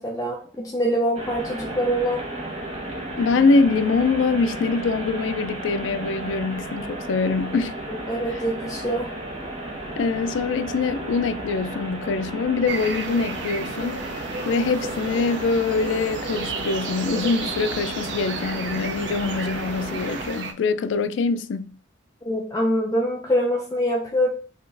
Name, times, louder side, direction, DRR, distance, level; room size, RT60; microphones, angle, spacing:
voice 1, 0.0-2.2 7.9-9.1 22.2-24.3, equal, 15° left, 0.5 m, -24 dB
sound 1, 1.2-20.3, right 1 dB, 30° right, 0.8 m, -34 dB
voice 2, 3.2-7.8 8.3-8.4 10.0-14.0 14.5-21.7, left 4 dB, 80° left, 0.3 m, -24 dB
sound 2, 12.7-20.5, right 4 dB, 70° right, 0.5 m, -33 dB
4.1 x 2.5 x 3.3 m
head